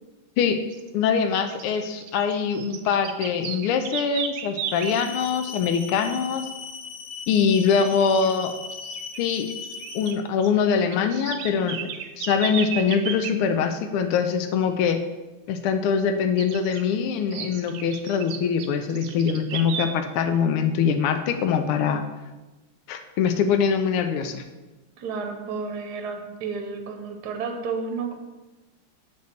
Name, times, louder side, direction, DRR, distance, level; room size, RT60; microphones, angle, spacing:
sound 1, 0.7-0.9 1.3-5.0 7.6-7.9 8.1-8.3 8.7-10.2 10.4-13.4 16.4-16.8 17.3-19.9, right 8 dB, 80° right, 1.5 m, -35 dB
voice 1, 0.9-6.4 7.3-8.5 9.2-9.5 9.9-11.9 12.2-15.0 15.5-22.0 22.9-24.4, left 6 dB, 85° left, 7 dB, 1.5 m, -23 dB
sound 2, 4.7-10.1, left 5 dB, 70° left, 1.1 m, -38 dB
voice 2, 7.8-8.3 25.0-28.1, right 5 dB, 60° right, 4 dB, 1.2 m, -32 dB
7.8 x 3.6 x 6.6 m, 1.1 s
omnidirectional pair, 2.4 m